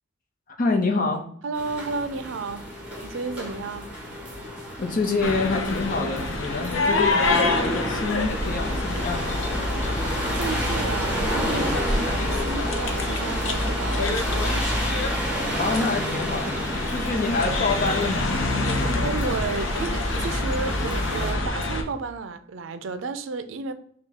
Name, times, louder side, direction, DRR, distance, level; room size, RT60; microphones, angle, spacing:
voice 1, 0.6-1.2 4.8-9.4 15.5-18.7, left 3 dB, 45° left, 0.8 m, -27 dB
voice 2, 1.4-2.7 3.0-3.9 10.3-14.9 19.0-23.7, right 4 dB, 75° right, 0.4 m, -32 dB
sound 1, 1.5-21.3, equal, 5° right, 1.2 m, -29 dB
sound 2, 5.2-21.8, left 2 dB, 75° left, 0.7 m, -28 dB
5.9 x 2.3 x 3.5 m
head